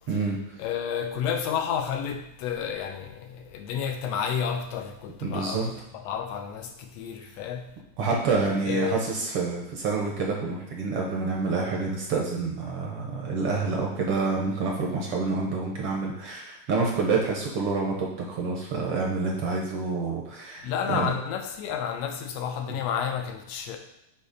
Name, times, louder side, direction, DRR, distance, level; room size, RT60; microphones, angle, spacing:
voice 1, 0.1-0.4 5.2-5.6 8.0-21.1 22.7-22.8, right 4 dB, 70° right, -1 dB, 1.4 m, -28 dB
voice 2, 0.6-7.7 8.7-9.1 20.6-23.8, left 7 dB, 80° left, 6 dB, 1.5 m, -31 dB
8.3 x 2.8 x 5.1 m, 0.85 s
omnidirectional pair, 3.4 m